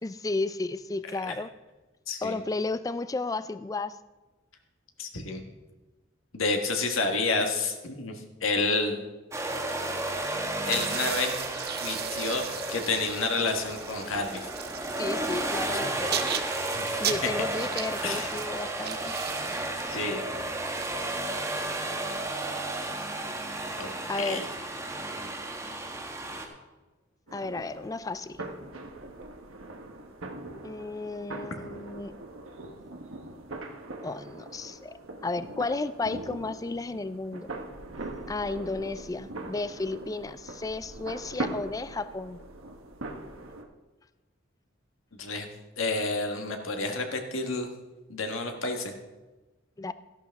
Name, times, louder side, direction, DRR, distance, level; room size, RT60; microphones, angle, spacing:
voice 1, 0.0-1.5 2.2-4.0 15.0-16.4 16.8-19.1 24.0-24.4 27.3-28.4 30.6-32.1 34.0-37.5 38.3-42.4 49.8-49.9, left 3 dB, 15° left, 14 dB, 0.4 m, -33 dB
voice 2, 5.0-5.4 6.3-9.0 10.6-11.3 11.8-14.5 15.8-15.9 16.7-17.3 18.0-18.3 19.9-20.2 23.8-24.4 45.2-45.5 45.8-47.7 48.1-48.9, left 3 dB, 80° left, 4 dB, 1.5 m, -30 dB
sound 1, 9.3-26.5, right 2 dB, 15° right, 1.2 m, -33 dB
sound 2, 10.5-21.6, right 9 dB, 50° right, 0.7 m, -37 dB
sound 3, 27.3-43.6, right 2 dB, 85° right, 1.2 m, -41 dB
13.5 x 11.5 x 3.5 m, 1.2 s
head